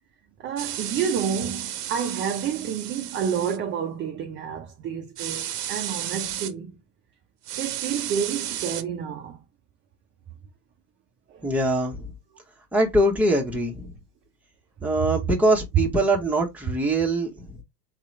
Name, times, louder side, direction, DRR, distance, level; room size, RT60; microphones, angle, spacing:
voice 1, 0.4-6.8 7.6-9.4 11.3-11.5, right 7 dB, 25° right, 0.6 m, -29 dB
sound 1, 0.6-3.6 5.2-6.5 7.5-8.8, right 11 dB, 70° right, 0.8 m, -33 dB
voice 2, 11.4-12.1 12.7-13.9 14.8-17.6, right 1 dB, 5° right, 1.1 m, -23 dB
4.1 x 2.9 x 3.2 m
hypercardioid pair, 100°, 48 cm